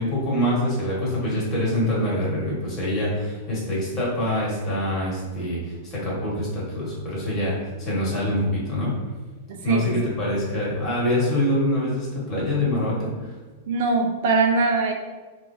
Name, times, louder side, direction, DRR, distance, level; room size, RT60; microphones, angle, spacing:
voice 1, 0.0-8.9 9.6-13.3, left 1 dB, 30° left, -6 dB, 1.4 m, -25 dB
voice 2, 9.5-10.1 13.7-14.9, right 3 dB, 65° right, 2 dB, 0.4 m, -22 dB
3.2 x 2.6 x 2.6 m, 1.3 s
supercardioid pair, 145°, 0 cm